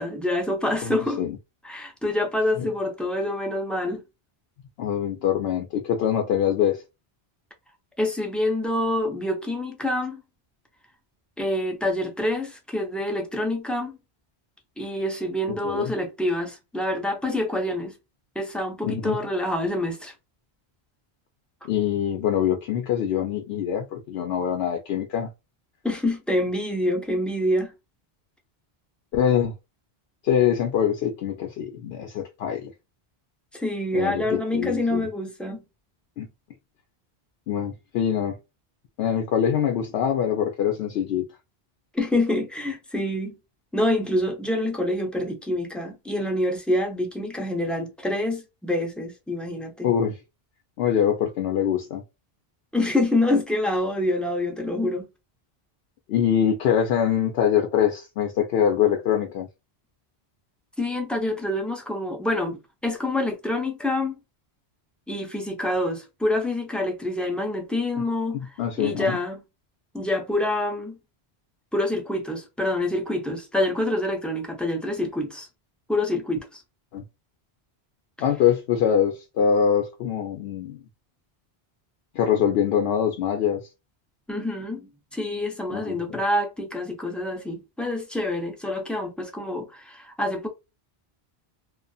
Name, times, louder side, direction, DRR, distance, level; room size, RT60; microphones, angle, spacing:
voice 1, 0.0-1.2 1.6-4.0 8.0-10.2 11.4-14.0 14.8-17.9 18.3-20.1 25.8-27.7 33.5-35.6 41.9-43.3 43.7-49.9 52.7-55.1 60.8-64.2 65.1-69.4 69.9-71.0 71.7-75.5 75.9-76.6 84.3-90.5, left 1 dB, ahead, 0.4 m, -26 dB
voice 2, 0.8-1.4 4.8-6.8 15.6-15.9 18.8-19.2 21.6-25.3 29.1-29.5 30.2-32.7 33.9-35.1 36.2-36.3 37.5-38.4 39.0-41.2 49.8-50.2 50.8-52.0 56.1-59.5 68.6-69.2 76.9-77.0 78.2-80.8 82.1-83.6 85.7-86.2, left 8 dB, 80° left, 0.8 m, -24 dB
2.5 x 2.4 x 2.3 m
omnidirectional pair, 1.1 m